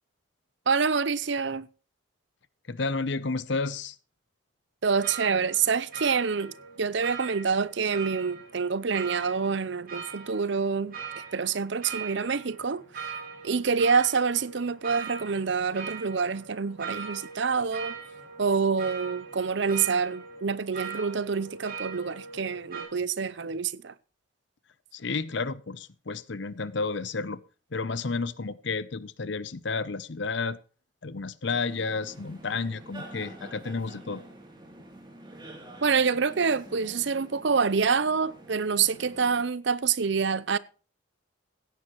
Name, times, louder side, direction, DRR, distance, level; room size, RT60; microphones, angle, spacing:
voice 1, 0.7-1.7 4.8-13.1 13.4-18.0 18.4-23.9 35.8-40.6, right 5 dB, 65° right, 0.6 m, -27 dB
voice 2, 2.7-4.0 24.9-27.4 27.7-30.6 31.0-34.2, left 4 dB, 65° left, 0.7 m, -31 dB
sound 1, 5.0-22.8, right 6 dB, 50° right, 6.8 m, -41 dB
sound 2, 31.5-39.5, right 1 dB, 25° right, 2.9 m, -47 dB
16.5 x 10.5 x 3.1 m
head